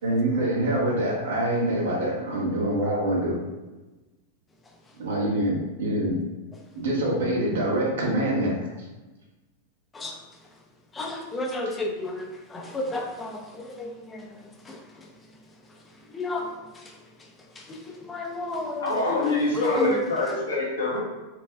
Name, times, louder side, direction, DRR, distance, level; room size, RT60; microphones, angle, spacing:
voice 1, 0.0-3.4 5.0-6.2 6.7-8.7, right 1 dB, 60° right, -4 dB, 1.3 m, -25 dB
voice 2, 10.9-14.3 14.7-14.8 16.1-16.5 18.1-19.0 19.5-20.0, left 2 dB, 15° left, 1 dB, 0.7 m, -31 dB
voice 3, 18.8-21.0, left 2 dB, 70° left, -6 dB, 1.5 m, -25 dB
4.7 x 3.3 x 2.3 m, 1.1 s
figure-of-eight pair, 90°, 0 cm